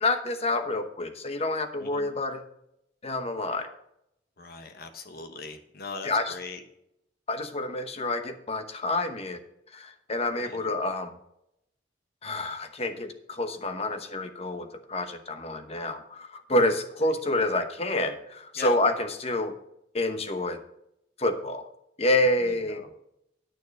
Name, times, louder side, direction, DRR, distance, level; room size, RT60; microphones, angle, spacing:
voice 1, 0.0-2.4 3.0-3.7 6.0-6.3 7.3-9.4 9.7-11.2 12.2-19.5 19.9-20.6 21.2-21.7 22.0-22.8, left 2 dB, 35° left, 7 dB, 1.0 m, -28 dB
voice 2, 4.4-6.6 10.4-10.7 18.6-18.8 22.4-22.9, left 4 dB, 55° left, 7 dB, 1.2 m, -41 dB
9.4 x 6.7 x 5.2 m, 0.79 s
head